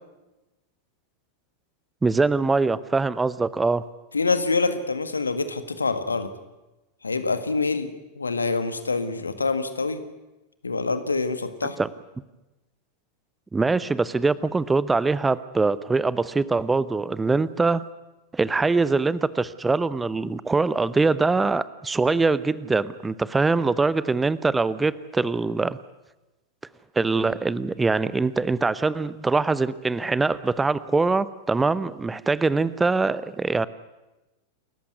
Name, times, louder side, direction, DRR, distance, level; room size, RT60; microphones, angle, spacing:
voice 1, 2.0-3.8 11.8-11.9 13.5-17.9 18.3-25.8 27.0-33.7, right 3 dB, 10° right, 18 dB, 0.7 m, -23 dB
voice 2, 4.1-6.3 7.0-7.9 8.2-10.0 10.6-11.8, left 3 dB, 75° left, 11 dB, 1.7 m, -25 dB
28.5 x 14.5 x 9.5 m, 1.0 s
figure-of-eight pair, 90°, 0 cm